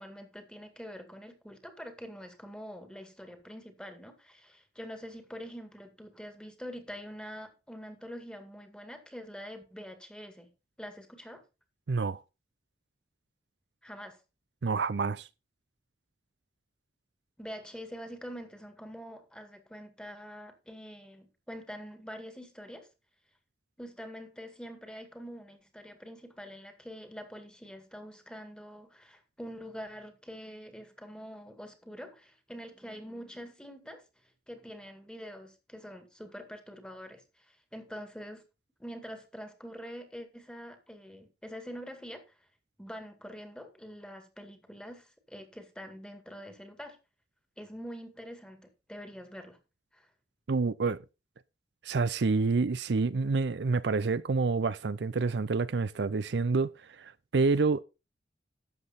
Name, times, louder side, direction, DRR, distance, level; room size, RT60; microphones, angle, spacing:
voice 1, 0.0-10.5 10.8-11.4 13.8-14.2 17.4-22.9 23.8-34.0 34.5-38.4 38.8-42.2 42.8-47.0 47.6-49.6 49.9-50.1, equal, 5° left, 2.1 m, -45 dB
voice 2, 11.9-12.2 14.6-15.3 50.5-51.0 51.8-57.8, right 4 dB, 70° right, 0.5 m, -28 dB
12.0 x 7.7 x 4.1 m
head